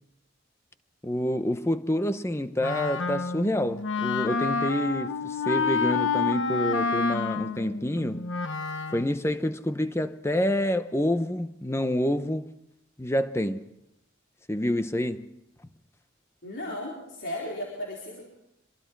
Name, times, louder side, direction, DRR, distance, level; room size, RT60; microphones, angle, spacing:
voice 1, 1.0-8.3 8.9-12.5 13.0-13.7 14.5-15.3, left 1 dB, 15° left, 0.8 m, -28 dB
Wind instrument woodwind instrument, 2.6-9.2, left 4 dB, 80° left, 1.0 m, -29 dB
voice 2, 16.4-18.2, left 1 dB, 65° left, 4.4 m, -35 dB
26.5 x 23.0 x 4.7 m
head